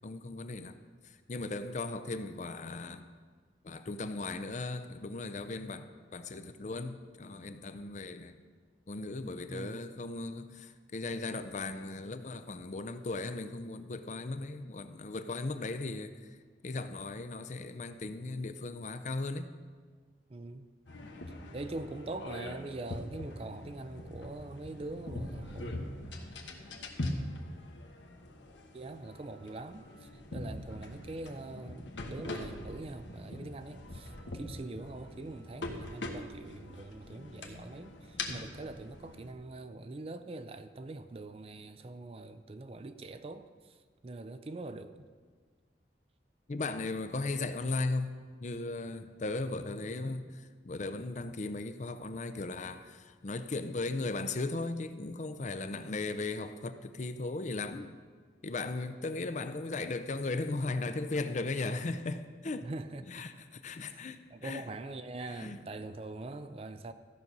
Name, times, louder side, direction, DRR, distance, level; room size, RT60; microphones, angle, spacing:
voice 1, 0.0-0.8 1.3-3.1 3.6-8.3 8.9-16.4 16.6-19.5 46.5-48.1 48.4-57.9 58.4-62.7 63.1-64.6 65.4-65.6, left 3 dB, 40° left, 10 dB, 0.5 m, -37 dB
voice 2, 9.5-9.8 20.3-20.7 21.3-25.8 28.7-43.8 44.0-45.1 62.6-63.3 63.9-66.9, right 2 dB, 35° right, 11 dB, 0.4 m, -43 dB
sound 1, 20.9-39.3, left 2 dB, 85° left, 1.2 m, -42 dB
14.0 x 6.1 x 5.3 m, 1.5 s
head